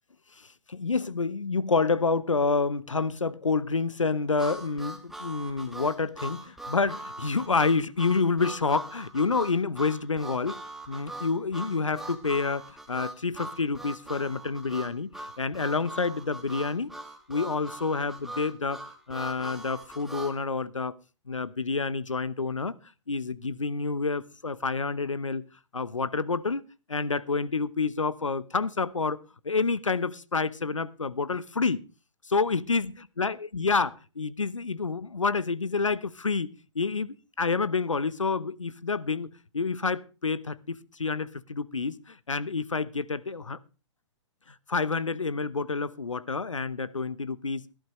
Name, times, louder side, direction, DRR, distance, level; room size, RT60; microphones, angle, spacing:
voice 1, 0.7-10.6 10.9-16.9 17.3-18.8 19.1-20.9 21.3-22.8 23.1-25.4 25.7-26.6 26.9-29.2 29.4-31.8 32.3-32.9 33.2-37.1 37.4-39.3 39.5-43.6 44.7-47.6, left 4 dB, 90° left, 0.9 m, -28 dB
Harmonica, 4.4-20.4, right 1 dB, ahead, 1.9 m, -41 dB
17.5 x 11.5 x 3.1 m
figure-of-eight pair, 120°, 16 cm